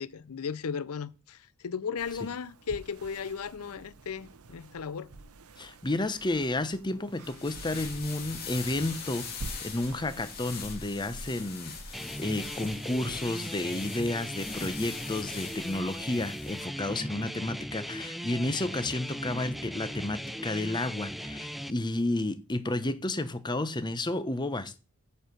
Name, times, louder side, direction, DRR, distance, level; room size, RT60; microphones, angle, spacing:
voice 1, 0.0-1.4 1.6-5.1, left 6 dB, 80° left, 0.6 m, -35 dB
sound 1, 2.0-12.8, right 3 dB, 90° right, 0.8 m, -49 dB
voice 2, 5.6-24.8, left 2 dB, 20° left, 0.7 m, -31 dB
sound 2, 7.1-16.6, left 5 dB, 45° left, 2.1 m, -42 dB
sound 3, 11.9-21.7, equal, ahead, 0.3 m, -38 dB
8.8 x 4.6 x 6.6 m
head